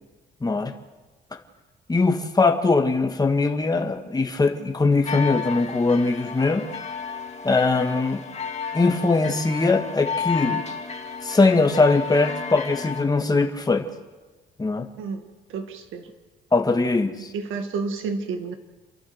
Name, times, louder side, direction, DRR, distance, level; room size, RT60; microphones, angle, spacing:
voice 1, 0.4-0.7 1.9-6.7 7.4-8.2 8.7-10.6 11.2-13.9 14.6-14.9 16.5-17.3, left 3 dB, 20° left, 4 dB, 1.8 m, -21 dB
sound 1, 5.0-13.0, left 5 dB, 35° left, 2.2 m, -32 dB
voice 2, 15.5-16.0 17.3-18.5, right 4 dB, 85° right, 7 dB, 2.1 m, -30 dB
28.5 x 11.5 x 8.0 m, 1.2 s
cardioid pair, 90°, 20 cm